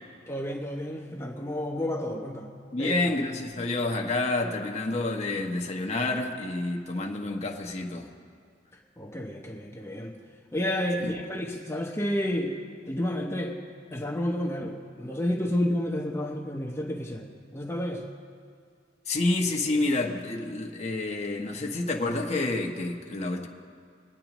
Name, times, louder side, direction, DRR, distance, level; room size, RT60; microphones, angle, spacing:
voice 1, 0.3-2.5 2.8-3.0 9.0-10.2 10.5-12.6 12.9-13.6 13.9-17.3 17.5-18.0, left 1 dB, 15° left, 1 dB, 0.7 m, -30 dB
voice 2, 2.7-8.1 11.0-11.1 19.1-23.5, left 2 dB, 35° left, 1 dB, 1.0 m, -29 dB
22.5 x 9.2 x 3.0 m, 2.2 s
head